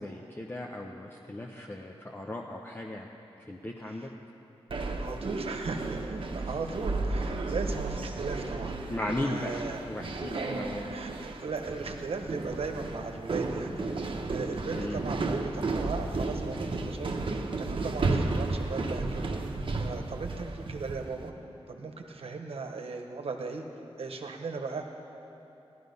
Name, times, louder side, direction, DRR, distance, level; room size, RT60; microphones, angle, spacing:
voice 1, 0.0-3.1 3.4-4.1 6.4-6.5 8.9-10.9 14.7-15.0, left 1 dB, 20° left, 0 dB, 0.7 m, -37 dB
sound 1, 4.7-21.2, right 3 dB, 60° right, 0.9 m, -33 dB
voice 2, 5.0-8.8 9.2-9.8 10.3-10.6 10.9-13.9 14.3-17.3 17.6-19.4 19.8-21.3 21.7-23.6 24.0-24.8, right 4 dB, 75° right, 4 dB, 1.1 m, -37 dB
15.5 x 11.0 x 5.4 m, 2.9 s
wide cardioid pair, 115°, 10 cm